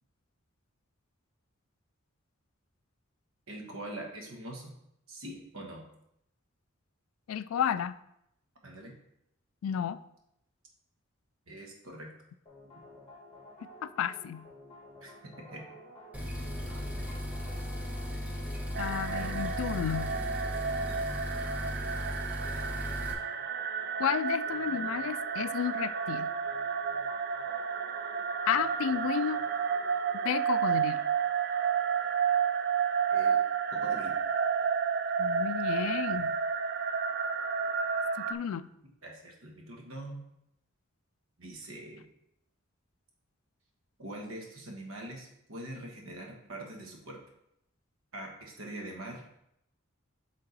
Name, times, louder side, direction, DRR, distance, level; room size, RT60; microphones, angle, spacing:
voice 1, 3.5-4.7 5.1-5.9 8.6-8.9 11.5-12.1 15.0-15.6 19.1-19.3 33.1-33.4 33.7-34.1 39.0-40.2 41.4-42.1 44.0-47.2 48.1-49.4, right 1 dB, 80° right, 1 dB, 1.3 m, -43 dB
voice 2, 7.3-7.9 9.6-10.0 13.8-14.5 18.8-20.2 24.0-26.3 28.5-29.4 30.2-31.1 35.2-36.4 38.2-38.7, left 8 dB, 75° left, 16 dB, 0.3 m, -32 dB
sound 1, 12.5-30.4, equal, 25° left, 1.7 m, -52 dB
sound 2, 16.1-23.1, equal, 10° right, 0.8 m, -36 dB
sound 3, 18.7-38.3, right 6 dB, 50° right, 0.4 m, -31 dB
6.8 x 3.6 x 4.0 m, 0.78 s
head